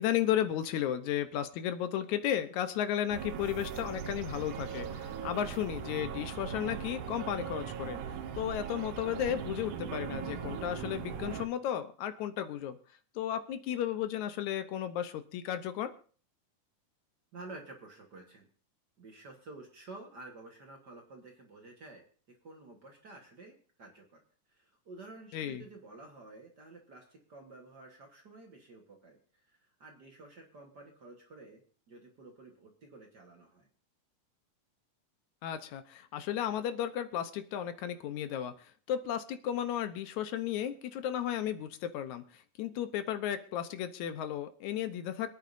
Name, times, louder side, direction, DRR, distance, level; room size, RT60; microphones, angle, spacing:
voice 1, 0.0-8.0 8.4-12.8 13.2-15.9 25.3-25.6 35.4-38.5 38.9-42.2 42.6-45.3, left 10 dB, 70° left, 10 dB, 2.1 m, -34 dB
sound 1, 3.1-11.5, right 7 dB, 80° right, 2.6 m, -39 dB
voice 2, 17.3-18.5 19.0-24.2 24.5-29.2 29.5-33.7, right 2 dB, 50° right, 1 dB, 1.4 m, -51 dB
26.0 x 9.4 x 2.6 m, 0.43 s
omnidirectional pair, 3.6 m